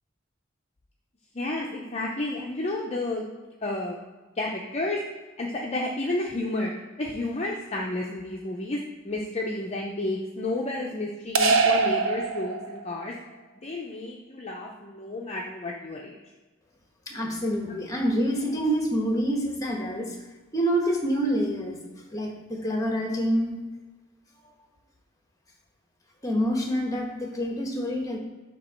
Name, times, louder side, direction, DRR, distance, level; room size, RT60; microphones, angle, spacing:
voice 1, 1.3-3.3 3.6-4.0 4.4-5.0 5.4-6.7 7.0-13.1 13.6-16.2, left 2 dB, 35° left, -2 dB, 0.6 m, -31 dB
sound 1, 11.3-13.0, right 4 dB, 70° right, 0.7 m, -23 dB
voice 2, 17.1-20.1 20.5-21.8 22.1-23.6 26.2-28.2, equal, 15° left, 1 dB, 1.1 m, -27 dB
7.3 x 2.9 x 5.5 m, 1.2 s
head